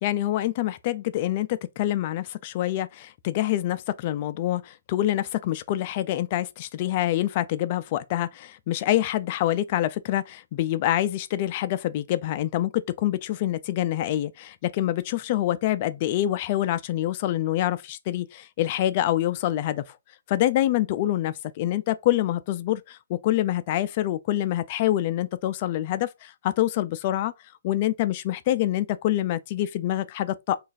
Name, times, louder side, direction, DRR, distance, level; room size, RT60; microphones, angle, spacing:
voice 1, 0.0-19.8 20.3-27.3 27.6-30.6, left 13 dB, 30° left, 0.3 m, -26 dB
3.1 x 2.4 x 4.0 m
hypercardioid pair, 165°, 0 cm